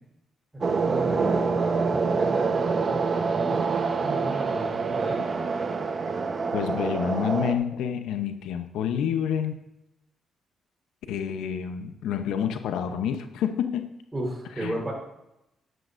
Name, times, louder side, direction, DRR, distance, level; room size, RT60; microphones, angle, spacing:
sound 1, 0.6-7.5, right 4 dB, 40° right, 1.0 m, -26 dB
voice 1, 0.7-3.7 4.0-5.2 14.1-14.9, right 1 dB, 15° right, 0 dB, 4.1 m, -33 dB
voice 2, 6.5-9.6 11.1-13.9 14.6-14.8, left 8 dB, 85° left, 8 dB, 0.7 m, -28 dB
12.5 x 11.0 x 2.6 m, 0.87 s
cardioid pair, 90°, 0 cm